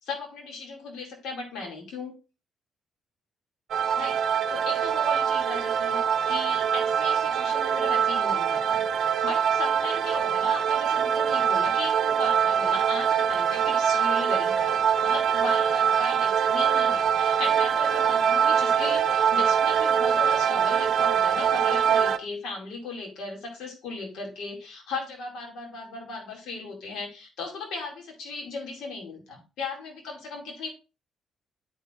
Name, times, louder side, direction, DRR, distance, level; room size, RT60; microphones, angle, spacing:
voice 1, 0.0-2.1 4.0-30.7, left 3 dB, 80° left, 0 dB, 2.2 m, -37 dB
sound 1, 3.7-22.2, right 8 dB, 65° right, 0.6 m, -23 dB
12.0 x 4.6 x 2.4 m, 0.30 s
cardioid pair, 90°, 0 cm